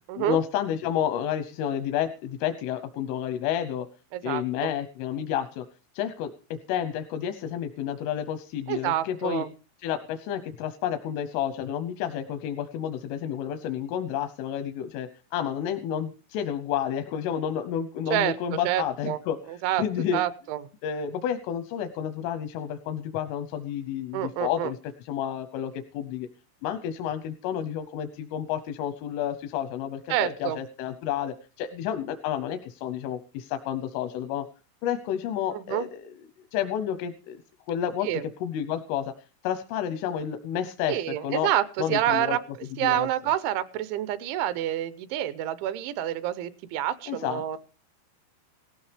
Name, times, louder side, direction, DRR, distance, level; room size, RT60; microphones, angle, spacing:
voice 1, 0.2-3.9 4.2-5.6 5.9-9.4 9.8-19.4 19.8-20.2 20.8-26.3 26.6-34.5 34.8-36.1 36.5-37.4 37.7-39.1 39.4-41.5 41.8-42.4 42.8-43.1 47.1-47.6, left 9 dB, 85° left, 7 dB, 3.4 m, -30 dB
voice 2, 4.1-4.7 8.7-9.5 18.1-18.3 18.6-19.2 19.5-19.8 20.1-20.6 24.1-24.7 30.1-30.6 35.5-35.9 38.0-38.2 40.9-42.4 42.8-47.6, right 12 dB, 80° right, 14 dB, 3.1 m, -28 dB
17.5 x 15.5 x 3.3 m, 0.33 s
omnidirectional pair, 5.6 m